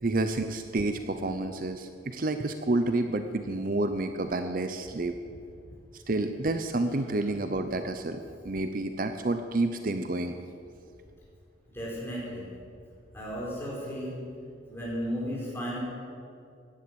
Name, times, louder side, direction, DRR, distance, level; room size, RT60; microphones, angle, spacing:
voice 1, 0.0-5.2 5.9-8.2 8.4-10.4, right 2 dB, 45° right, 8 dB, 0.7 m, -29 dB
voice 2, 11.7-12.4 13.1-14.2 14.7-15.8, equal, 10° left, -6 dB, 5.3 m, -34 dB
16.0 x 11.0 x 7.9 m, 2.5 s
head